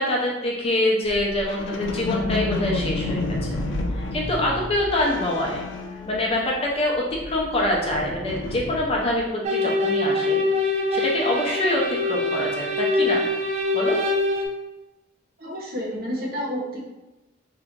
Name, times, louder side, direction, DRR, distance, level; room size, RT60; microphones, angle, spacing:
voice 1, 0.0-3.2 3.9-5.6 6.1-10.4 10.9-13.2 13.7-14.0, left 1 dB, 30° left, -2 dB, 0.6 m, -25 dB
sound 1, 1.1-6.7 7.0-9.2, left 2 dB, 90° left, 0.5 m, -30 dB
sound 2, 9.4-14.5, left 2 dB, 35° right, 0.4 m, -24 dB
voice 2, 15.4-16.9, equal, 50° right, -2 dB, 0.8 m, -30 dB
2.8 x 2.5 x 3.5 m, 1.0 s
head